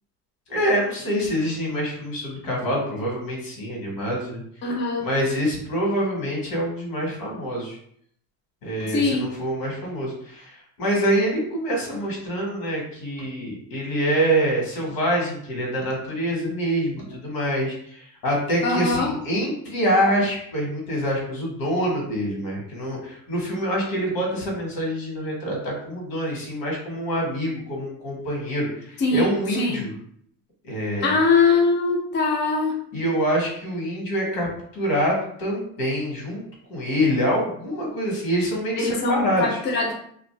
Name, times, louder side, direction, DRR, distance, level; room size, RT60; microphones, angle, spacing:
voice 1, 0.5-4.4 5.0-7.8 8.6-29.9 30.6-31.1 32.9-34.5 34.7-36.4 36.7-39.6, equal, 85° left, -1 dB, 1.4 m, -25 dB
voice 2, 4.6-5.1 8.9-9.3 18.6-19.1 29.0-29.8 31.0-32.7 38.8-39.9, left 4 dB, 30° left, -1 dB, 0.5 m, -22 dB
2.6 x 2.5 x 3.2 m, 0.66 s
cardioid pair, 140°, 36 cm